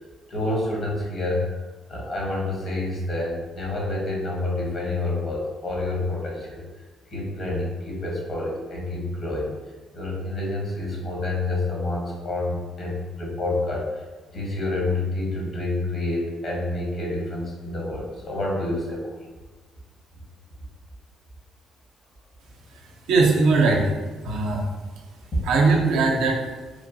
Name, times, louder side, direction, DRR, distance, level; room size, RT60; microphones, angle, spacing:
voice 1, 0.3-1.6 1.9-6.6 7.1-9.5 9.9-14.0 14.3-19.1, left 2 dB, 50° left, -3 dB, 1.0 m, -28 dB
voice 2, 22.9-24.0 24.2-24.7 25.4-26.4, right 3 dB, 85° right, 0 dB, 0.5 m, -20 dB
3.0 x 2.2 x 2.6 m, 1.3 s
supercardioid pair, 65°, 0 cm